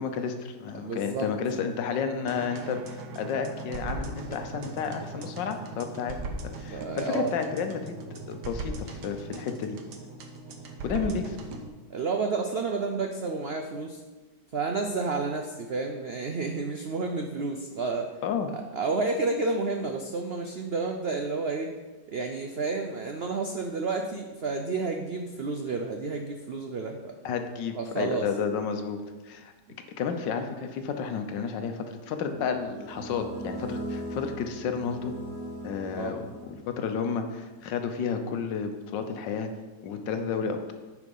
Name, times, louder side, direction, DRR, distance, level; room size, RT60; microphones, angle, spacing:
voice 1, 0.0-6.2 6.6-8.0 8.3-9.8 10.8-11.4 18.2-18.5 27.2-29.5 30.0-35.1 35.6-39.5 39.8-40.7, left 6 dB, 90° left, 7 dB, 1.5 m, -31 dB
voice 2, 0.8-1.3 6.7-7.3 10.9-11.2 11.9-14.0 14.5-18.1 18.7-21.7 22.1-27.2 27.7-28.2 35.9-36.3, right 3 dB, 90° right, 4 dB, 0.5 m, -30 dB
sound 1, 2.3-11.7, right 2 dB, 70° right, 1.5 m, -39 dB
sound 2, 32.3-36.9, right 1 dB, 30° right, 2.2 m, -39 dB
9.8 x 4.9 x 5.4 m, 1.3 s
omnidirectional pair, 1.9 m